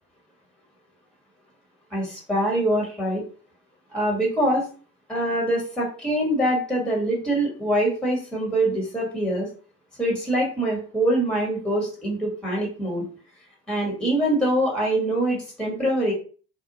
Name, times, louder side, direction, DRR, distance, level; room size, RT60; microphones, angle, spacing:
voice 1, 1.9-3.2 3.9-4.6 5.1-9.5 10.0-13.0 13.7-16.1, right 1 dB, ahead, -2 dB, 1.3 m, -24 dB
2.7 x 2.1 x 2.7 m, 0.39 s
figure-of-eight pair, 55°, 34 cm